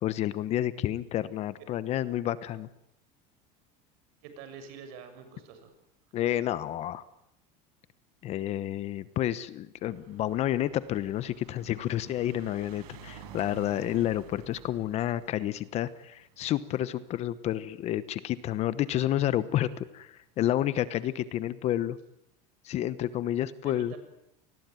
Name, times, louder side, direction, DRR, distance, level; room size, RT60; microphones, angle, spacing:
voice 1, 0.0-2.7 6.1-7.0 8.2-22.0 22.6-23.9, left 12 dB, 35° left, 15 dB, 1.1 m, -30 dB
voice 2, 4.2-5.7 23.6-24.0, right 6 dB, 55° right, 9 dB, 7.0 m, -46 dB
sound 1, 9.8-18.3 19.1-19.2 19.4-19.5 19.8-19.9, right 8 dB, 75° right, 5.9 m, -51 dB
28.5 x 20.5 x 9.3 m, 0.82 s
cardioid pair, 170°, 20 cm